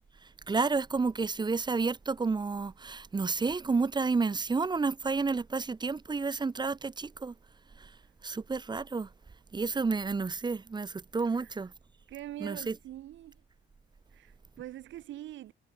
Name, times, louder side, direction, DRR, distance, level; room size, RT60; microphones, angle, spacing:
voice 1, 0.2-7.3 7.8-8.0 8.2-9.1 9.5-11.7 12.4-12.8, right 4 dB, 20° right, 0.7 m, -30 dB
voice 2, 12.1-13.4 14.1-15.5, right 14 dB, 70° right, 0.7 m, -43 dB
cardioid pair, 90°, 20 cm